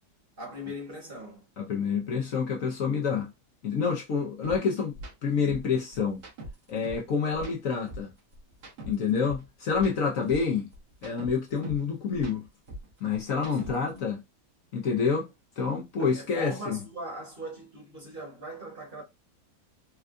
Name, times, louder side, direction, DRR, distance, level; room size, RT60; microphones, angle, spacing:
voice 1, 0.4-1.5 13.6-14.1 16.0-19.0, right 1 dB, 35° right, 1.3 m, -40 dB
voice 2, 1.6-3.3 3.6-4.9 5.2-6.2 6.7-8.1 8.9-10.7 11.0-12.5 13.0-14.2 14.7-15.3 15.6-16.8, left 5 dB, 60° left, 1.0 m, -28 dB
sound 1, 4.4-4.6 4.9-5.1 5.5-7.1 7.3-9.5 9.7-11.9 12.1-14.0, right 1 dB, 65° right, 1.6 m, -42 dB
4.4 x 2.3 x 2.5 m
omnidirectional pair, 1.8 m